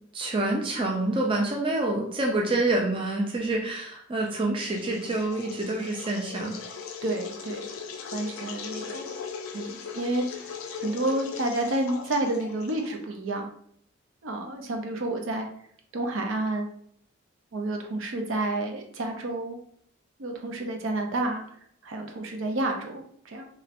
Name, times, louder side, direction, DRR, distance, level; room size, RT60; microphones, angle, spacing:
voice 1, 0.1-6.6, right 2 dB, 25° right, 0 dB, 0.4 m, -27 dB
sound 1, 4.6-13.1, left 6 dB, 85° left, 0.4 m, -39 dB
voice 2, 7.0-7.7 8.1-9.1 9.5-13.5 14.2-15.5 15.9-16.7 17.5-19.6 20.2-21.5 21.8-23.5, right 2 dB, 70° right, 3 dB, 0.6 m, -30 dB
3.0 x 2.9 x 2.5 m, 0.65 s
head